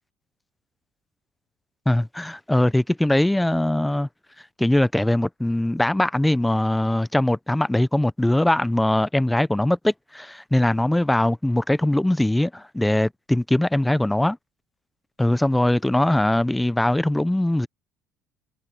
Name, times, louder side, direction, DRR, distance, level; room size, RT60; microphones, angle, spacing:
voice 1, 1.9-4.1 4.6-14.4 15.2-17.7, left 1 dB, 5° left, 0.9 m, -21 dB
supercardioid pair, 80°, 0 cm